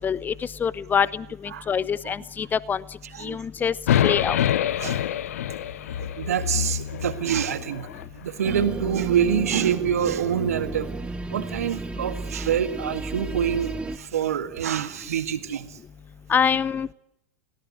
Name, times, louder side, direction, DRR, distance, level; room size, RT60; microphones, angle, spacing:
voice 1, 0.0-0.3 0.6-2.8 3.2-3.7 4.0-4.4 16.3-16.9, left 7 dB, 20° left, 20 dB, 0.9 m, -25 dB
voice 2, 3.1-3.7 4.8-5.0 6.0-11.0 11.3-15.8, right 9 dB, 75° right, 11 dB, 1.8 m, -26 dB
sound 1, 3.9-8.1, left 11 dB, 70° left, 0.8 m, -26 dB
sound 2, 8.4-14.0, right 2 dB, 10° right, 1.3 m, -33 dB
22.5 x 17.5 x 9.5 m, 0.80 s
figure-of-eight pair, 90°, 8 cm